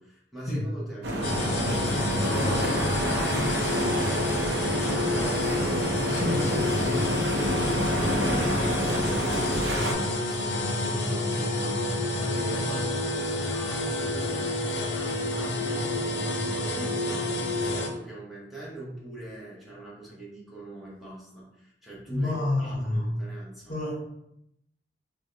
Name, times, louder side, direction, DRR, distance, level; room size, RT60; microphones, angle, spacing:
voice 1, 0.0-6.2 6.5-6.9 7.3-23.8, right 1 dB, ahead, -7 dB, 0.9 m, -42 dB
sound 1, 1.0-9.9, equal, 65° right, 0.6 m, -28 dB
sound 2, 1.2-17.9, left 2 dB, 75° left, 0.6 m, -29 dB
voice 2, 6.1-7.0 22.1-23.1 23.7-24.1, left 1 dB, 50° left, -3 dB, 0.9 m, -29 dB
4.8 x 2.2 x 2.5 m, 0.80 s
head